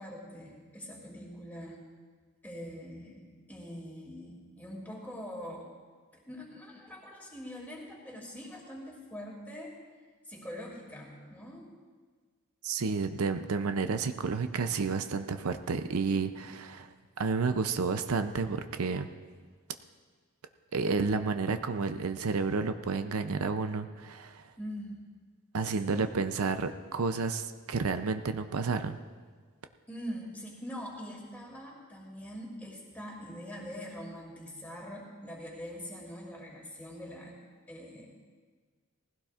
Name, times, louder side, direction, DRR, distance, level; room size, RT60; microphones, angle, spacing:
voice 1, 0.0-1.8 2.4-5.7 6.1-9.8 10.3-11.7 24.6-25.0 25.6-26.0 29.9-37.3 37.7-38.2, equal, 10° left, -3 dB, 2.6 m, -43 dB
voice 2, 12.6-19.1 20.7-24.4 25.5-29.0, right 4 dB, 80° right, 9 dB, 0.6 m, -31 dB
19.0 x 16.0 x 2.5 m, 1.5 s
head